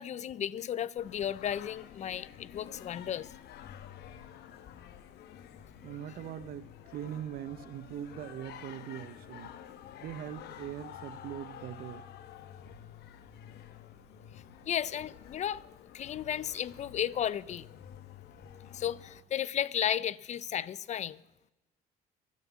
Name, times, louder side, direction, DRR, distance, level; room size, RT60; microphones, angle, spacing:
voice 1, 0.0-3.3 14.7-15.7 15.9-17.7 18.7-21.2, left 10 dB, 45° left, 0.4 m, -34 dB
Singing, 1.0-19.2, left 9 dB, 75° left, 1.1 m, -50 dB
voice 2, 5.8-9.5 10.0-12.0, right 11 dB, 60° right, 0.7 m, -41 dB
12.0 x 10.0 x 8.3 m
cardioid pair, 110°, 17 cm